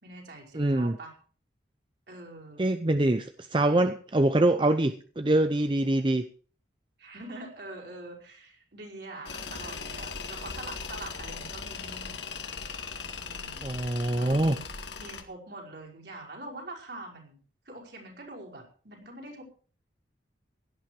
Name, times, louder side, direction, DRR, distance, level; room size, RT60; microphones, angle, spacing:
voice 1, 0.0-1.1 2.1-2.7 7.0-12.2 13.2-13.7 14.2-17.4 17.6-19.4, right 2 dB, 55° right, 0 dB, 5.1 m, -44 dB
voice 2, 0.5-1.0 2.6-6.2 13.6-14.6, right 1 dB, 25° right, 9 dB, 0.6 m, -24 dB
Tools, 9.3-15.2, left 5 dB, 65° left, 1.9 m, -39 dB
17.0 x 12.0 x 4.7 m, 0.42 s
head